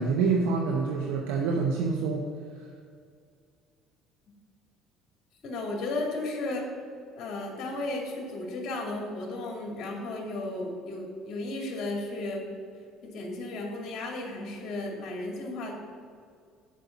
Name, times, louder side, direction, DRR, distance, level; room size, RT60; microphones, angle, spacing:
voice 1, 0.0-2.3, right 4 dB, 80° right, 1 dB, 0.8 m, -26 dB
voice 2, 5.4-6.6 7.1-12.4 13.0-15.7, left 2 dB, 60° left, 0 dB, 2.4 m, -34 dB
7.5 x 5.6 x 7.0 m, 2.2 s
hypercardioid pair, 65°, 0 cm